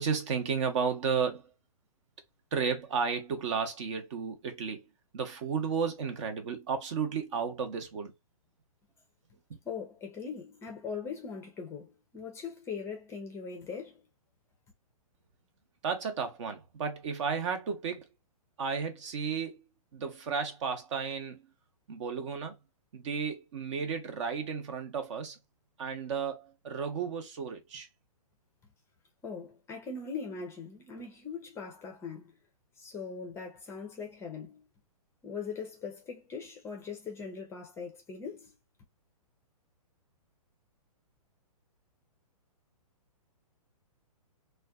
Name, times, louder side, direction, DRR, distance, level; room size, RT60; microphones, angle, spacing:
voice 1, 0.0-1.5 2.5-4.8 5.1-8.1 9.5-9.6 15.8-18.1 18.6-19.6 19.9-21.5 21.9-22.6 22.9-25.4 25.8-27.9, right 6 dB, 50° right, 0.8 m, -33 dB
voice 2, 9.6-14.0 29.2-32.2 32.8-34.6 35.2-38.5, left 5 dB, 15° left, 0.5 m, -40 dB
2.5 x 2.2 x 2.3 m
hypercardioid pair, 130°, 19 cm